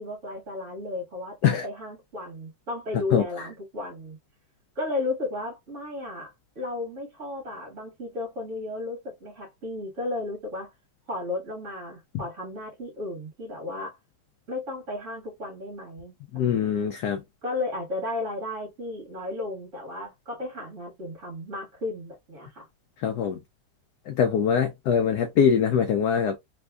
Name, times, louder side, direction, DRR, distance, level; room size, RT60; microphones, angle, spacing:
voice 1, 0.0-4.2 4.7-10.7 11.1-14.0 14.5-16.6 17.4-22.7, left 2 dB, 40° right, 1.9 m, -34 dB
voice 2, 3.1-3.5 16.3-17.2 23.0-23.4 24.1-26.4, left 7 dB, 75° left, 0.9 m, -23 dB
3.5 x 3.3 x 2.2 m
omnidirectional pair, 2.2 m